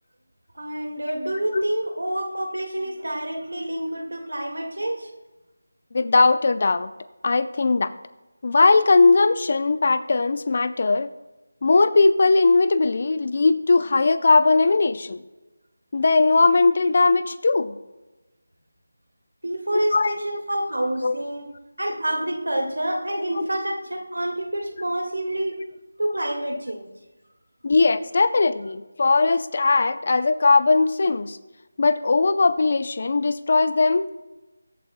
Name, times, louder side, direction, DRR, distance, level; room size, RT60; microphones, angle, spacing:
voice 1, 0.6-5.1 19.4-21.5 21.8-25.6 26.0-26.9, right 1 dB, 85° right, 4 dB, 2.0 m, -28 dB
voice 2, 5.9-6.9 7.2-7.9 8.4-11.1 11.6-15.2 15.9-17.8 19.7-20.1 21.0-21.2 23.4-23.5 27.6-31.4 31.8-34.2, left 3 dB, 45° left, 13 dB, 0.5 m, -19 dB
22.5 x 8.5 x 2.2 m, 1.1 s
figure-of-eight pair, 165°, 0 cm